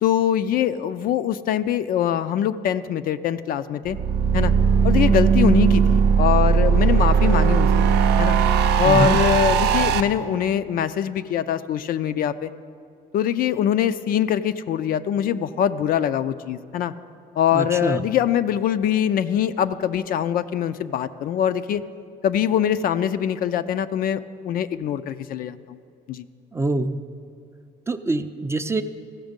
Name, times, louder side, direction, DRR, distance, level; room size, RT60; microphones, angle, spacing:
voice 1, 0.0-4.0 4.3-4.5 4.8-7.9 8.2-8.4 8.8-12.5 13.1-16.9 17.4-21.8 22.2-25.8 26.1-26.2, left 9 dB, 60° left, 12 dB, 0.4 m, -23 dB
sound 1, 3.9-10.0, right 6 dB, 80° right, 0.6 m, -18 dB
voice 2, 8.8-9.2 17.5-18.0 26.5-27.0 27.9-28.8, right 2 dB, 15° right, 9 dB, 0.4 m, -24 dB
15.5 x 6.3 x 5.2 m, 2.4 s
cardioid pair, 110°, 17 cm